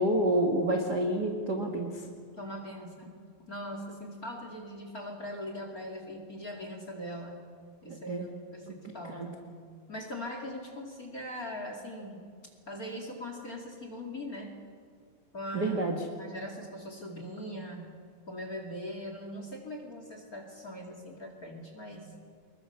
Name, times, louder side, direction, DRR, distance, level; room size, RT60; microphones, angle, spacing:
voice 1, 0.0-1.9 7.9-8.2 9.1-9.3 15.5-16.0, right 1 dB, 45° right, 2 dB, 1.3 m, -28 dB
voice 2, 2.4-3.1 3.5-7.4 7.8-9.4 9.9-12.2 12.7-14.5 15.3-15.8 16.2-17.9 18.3-22.1, equal, 25° left, 3 dB, 2.3 m, -41 dB
25.0 x 22.0 x 6.8 m, 2.1 s
omnidirectional pair, 4.5 m